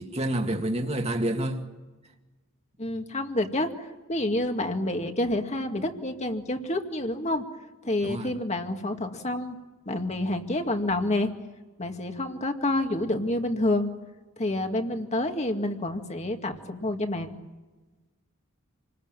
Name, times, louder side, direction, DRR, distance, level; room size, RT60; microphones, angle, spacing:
voice 1, 0.0-1.6 8.0-8.3, right 1 dB, 30° right, 2.2 m, -28 dB
voice 2, 2.8-7.4 7.8-9.6 9.9-11.3 11.8-13.9 14.4-17.3, left 1 dB, 30° left, 2.2 m, -28 dB
28.5 x 20.5 x 9.1 m
head